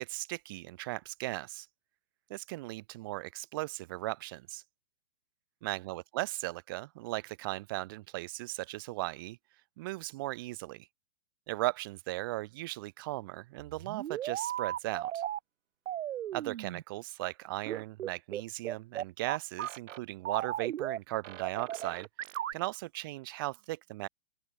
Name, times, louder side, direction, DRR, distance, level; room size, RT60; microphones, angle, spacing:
voice 1, 0.0-1.7 2.3-4.6 5.6-9.4 9.8-10.9 11.5-15.2 16.3-22.1 22.5-24.1, right 19 dB, 20° right, 0.4 m, -37 dB
sound 1, 13.6-15.4 15.9-16.8 17.7-20.0 20.2-21.0 21.2-22.5, right 12 dB, 85° right, 0.6 m, -36 dB
open air
hypercardioid pair, 145°, 37 cm